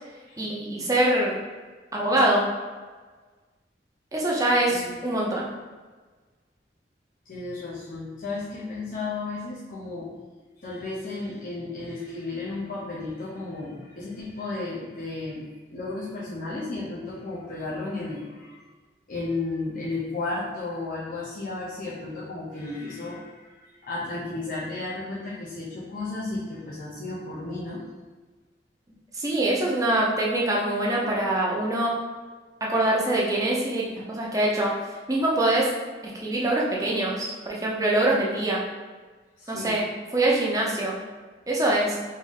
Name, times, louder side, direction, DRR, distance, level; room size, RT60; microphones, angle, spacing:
voice 1, 0.4-1.3 1.9-2.5 4.1-5.5 29.1-31.9 32.7-34.7 35.1-35.7 36.0-38.6 39.5-39.8 40.1-41.0 41.5-42.0, right 1 dB, 20° right, -4 dB, 0.6 m, -24 dB
voice 2, 4.7-5.1 7.3-10.2 10.6-15.5 15.7-18.6 19.1-27.8 39.4-39.8, left 3 dB, 50° left, -8 dB, 0.7 m, -33 dB
3.3 x 2.7 x 3.5 m, 1.4 s
head